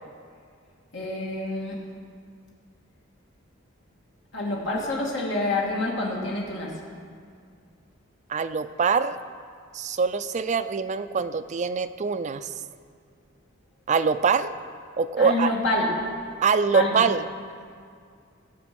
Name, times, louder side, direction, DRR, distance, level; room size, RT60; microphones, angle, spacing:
voice 1, 0.9-1.8 4.3-6.8 15.2-16.1 16.7-17.1, left 2 dB, 60° left, -3 dB, 2.2 m, -27 dB
voice 2, 8.3-9.1 9.7-12.5 13.9-14.6 15.0-15.5 16.4-17.2, right 5 dB, 35° right, 11 dB, 0.4 m, -24 dB
15.5 x 7.0 x 6.0 m, 2.2 s
head